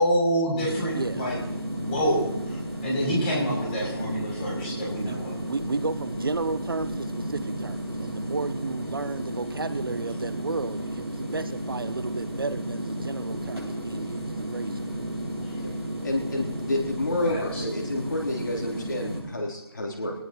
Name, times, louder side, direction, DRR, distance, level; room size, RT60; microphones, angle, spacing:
voice 1, 0.0-1.4 1.8-5.4 15.4-15.6 17.2-17.6, equal, 20° left, -5 dB, 7.4 m, -27 dB
sound 1, 0.6-19.2, right 1 dB, 80° right, 7.8 m, -33 dB
voice 2, 0.9-1.3 5.1-5.2 5.5-15.1, right 3 dB, 60° right, 13 dB, 1.0 m, -33 dB
voice 3, 16.0-20.1, left 1 dB, 50° left, -2 dB, 3.8 m, -29 dB
23.0 x 19.0 x 3.1 m, 0.93 s
figure-of-eight pair, 155°, 13 cm